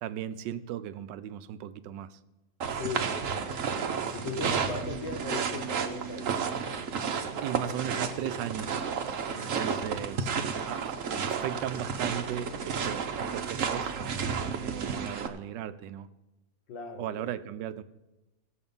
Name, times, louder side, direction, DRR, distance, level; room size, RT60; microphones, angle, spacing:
voice 1, 0.0-2.2 3.3-3.6 7.4-8.9 9.3-10.3 10.7-13.9 14.6-16.1 17.0-17.8, right 10 dB, 75° right, 13 dB, 1.2 m, -37 dB
sound 1, 2.6-15.3, right 6 dB, 55° right, 1.0 m, -32 dB
voice 2, 2.7-3.7 4.1-6.4 9.3-9.8 10.4-10.6 16.7-17.4, left 3 dB, 80° left, 4 dB, 2.1 m, -38 dB
16.0 x 7.0 x 5.4 m, 1.1 s
omnidirectional pair, 2.0 m